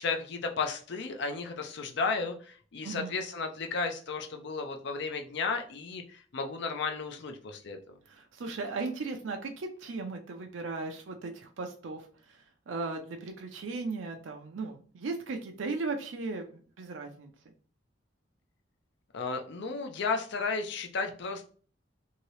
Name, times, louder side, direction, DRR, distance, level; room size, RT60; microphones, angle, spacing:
voice 1, 0.0-7.8 19.1-21.5, left 4 dB, 65° left, 5 dB, 0.5 m, -33 dB
voice 2, 2.8-3.2 8.1-17.3, right 3 dB, 75° right, 4 dB, 0.5 m, -37 dB
2.8 x 2.7 x 3.1 m, 0.42 s
head